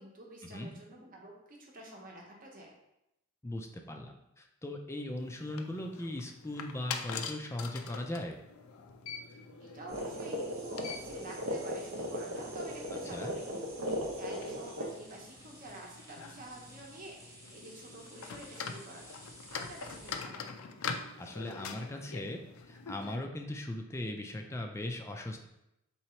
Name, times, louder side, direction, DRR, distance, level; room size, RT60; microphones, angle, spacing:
voice 1, 0.0-2.7 9.6-13.4 14.1-19.2 19.5-20.5, right 1 dB, 40° right, -1 dB, 0.9 m, -49 dB
voice 2, 3.4-8.4 13.1-13.3 21.2-22.4 22.7-25.5, left 1 dB, 15° left, 3 dB, 0.3 m, -39 dB
sound 1, 5.2-23.2, left 6 dB, 90° left, 0.4 m, -45 dB
sound 2, 9.9-20.2, equal, 15° right, 1.0 m, -56 dB
sound 3, 9.9-14.9, equal, 70° right, 0.8 m, -37 dB
3.8 x 2.9 x 4.3 m, 0.86 s
head